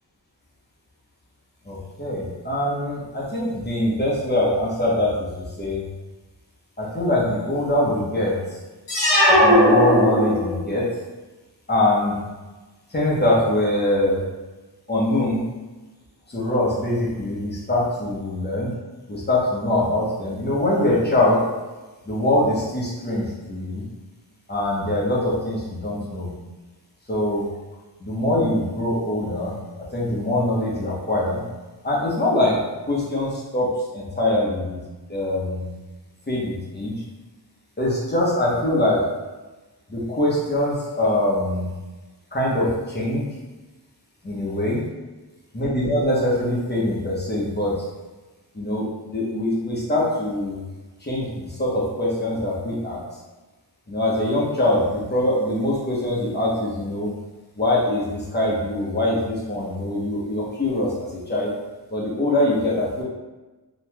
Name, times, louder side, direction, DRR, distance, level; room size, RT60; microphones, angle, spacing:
voice 1, 1.6-5.9 6.8-8.6 9.3-10.9 11.7-12.2 12.9-14.2 14.9-15.4 16.3-18.7 19.1-21.4 22.0-23.8 24.5-26.3 27.1-27.5 28.0-31.4 31.8-32.6 32.9-34.8 35.1-35.7 36.3-37.0 37.8-39.0 39.9-41.7 42.3-43.3 44.2-44.8 45.5-47.8 48.5-50.6 51.0-53.0 53.9-57.1 57.6-61.5 61.9-63.0, left 1 dB, 25° left, -6 dB, 0.9 m, -23 dB
sound 1, 8.9-10.7, left 1 dB, 80° left, 0.9 m, -17 dB
3.1 x 2.9 x 2.2 m, 1.2 s
wide cardioid pair, 65°, 43 cm